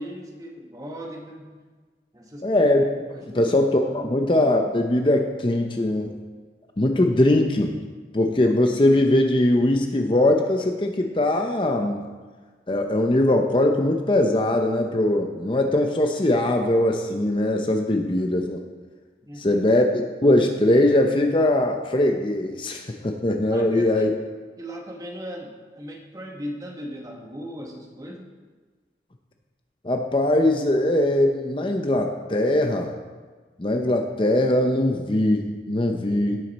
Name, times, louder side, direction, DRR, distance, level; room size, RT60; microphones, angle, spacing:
voice 1, 0.0-1.5 2.1-2.5 3.1-3.4 3.9-4.2 19.3-19.6 23.5-24.0 24.6-28.3, equal, 20° right, 0 dB, 1.3 m, -37 dB
voice 2, 2.4-2.9 3.3-6.1 6.8-7.7 8.1-12.0 12.7-18.6 19.4-24.1 29.8-32.9 33.6-36.4, left 1 dB, 30° left, 3 dB, 0.6 m, -21 dB
17.0 x 6.3 x 4.2 m, 1.4 s
head